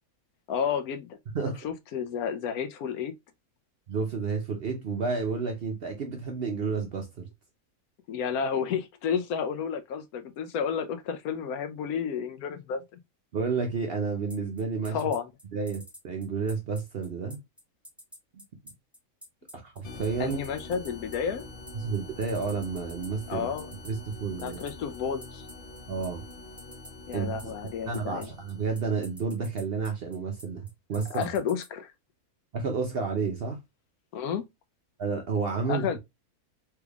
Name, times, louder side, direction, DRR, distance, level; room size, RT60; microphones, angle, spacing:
voice 1, 0.5-1.1 1.6-3.1 8.1-12.8 14.9-15.3 20.2-21.4 23.3-23.7 24.4-25.5 27.1-28.3 31.1-31.9 34.1-34.4 35.7-36.0, left 7 dB, 75° left, 1.0 m, -31 dB
voice 2, 3.9-7.3 13.3-15.0 15.5-17.4 18.3-18.4 19.5-20.4 21.8-23.5 23.8-24.6 25.9-26.2 27.1-27.4 27.9-31.3 32.5-33.6 35.0-35.9, right 4 dB, 55° right, 0.7 m, -31 dB
sound 1, 14.3-31.7, equal, ahead, 0.7 m, -47 dB
sound 2, 19.8-29.2, left 3 dB, 60° left, 0.5 m, -45 dB
3.4 x 3.3 x 2.3 m
omnidirectional pair, 1.6 m